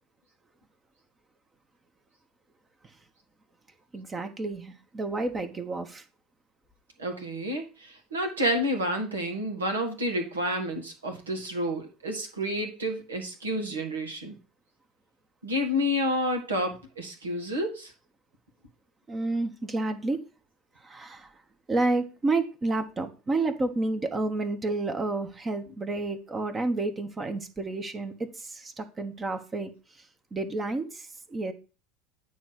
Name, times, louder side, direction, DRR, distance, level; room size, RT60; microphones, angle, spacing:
voice 1, 3.9-6.0 19.1-20.2 20.8-21.4 21.7-31.5, right 2 dB, 25° right, 7 dB, 1.1 m, -30 dB
voice 2, 7.0-14.3 15.4-17.9, equal, 85° right, 3 dB, 1.7 m, -30 dB
9.0 x 3.2 x 6.3 m, 0.33 s
figure-of-eight pair, 75°, 0 cm